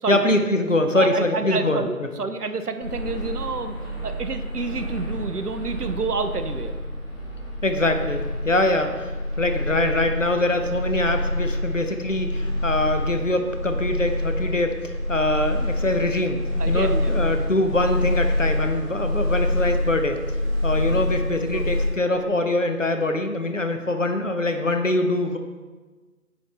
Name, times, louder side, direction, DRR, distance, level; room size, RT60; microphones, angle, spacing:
voice 1, 0.1-1.8 7.6-9.1 9.4-14.7 15.1-20.2 20.6-25.4, left 1 dB, 55° left, 7 dB, 0.6 m, -23 dB
voice 2, 0.9-6.8 16.6-17.1 21.5-21.6, right 4 dB, 75° right, 8 dB, 0.7 m, -29 dB
sound 1, 2.8-21.9, left 1 dB, 35° left, 1.8 m, -27 dB
7.8 x 3.4 x 4.0 m, 1.3 s
figure-of-eight pair, 165°, 47 cm